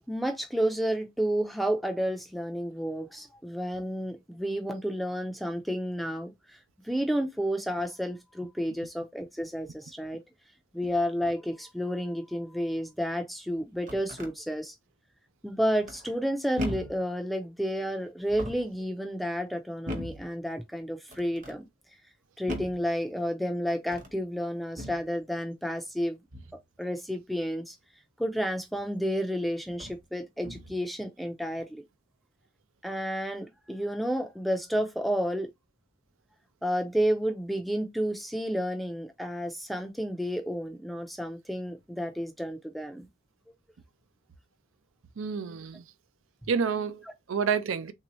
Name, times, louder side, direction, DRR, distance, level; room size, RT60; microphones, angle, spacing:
voice 1, 0.1-6.3 6.8-10.2 10.7-14.7 15.4-21.6 22.4-26.2 26.8-27.8 28.2-31.8 32.8-35.5 36.6-43.1, equal, ahead, 0.4 m, -31 dB
sound 1, 13.6-14.3 15.8-16.2 16.6-17.1 18.2-18.8 19.9-20.3 21.1-21.6 22.5-22.9 23.8-24.2 24.8-25.1 26.3-26.6 28.7-28.8 29.7-30.0 30.4-30.8, left 1 dB, 40° right, 0.8 m, -38 dB
voice 2, 45.2-45.9 46.5-47.9, right 6 dB, 80° right, 0.4 m, -29 dB
3.4 x 2.7 x 3.0 m
head